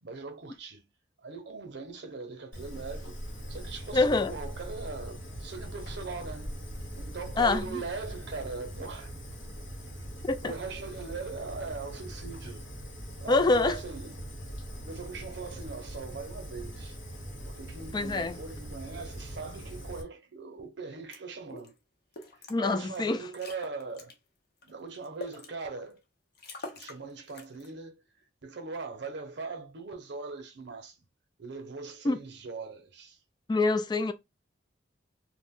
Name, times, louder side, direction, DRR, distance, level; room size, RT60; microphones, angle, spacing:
voice 1, 0.0-0.9 1.2-3.2 3.5-6.6 6.9-9.1 10.4-12.7 13.2-14.3 14.8-17.0 17.4-21.7 22.4-24.1 24.6-26.0 26.7-28.0 28.4-31.0 31.4-33.2, right 4 dB, 65° right, 0.7 m, -40 dB
Fire, 2.5-20.0, equal, 90° left, 1.2 m, -41 dB
voice 2, 3.9-4.3 7.4-7.8 10.2-10.5 13.3-13.8 17.9-18.4 22.5-23.2 32.0-32.2 33.5-34.1, left 3 dB, 25° left, 0.3 m, -25 dB
sound 1, 21.1-21.2 21.5-21.7 22.1-22.6 23.0-23.1 23.3-24.1 24.6-25.5 26.0-26.1 26.4-27.0 27.3-27.7, left 3 dB, 55° left, 0.7 m, -44 dB
2.5 x 2.1 x 3.6 m
head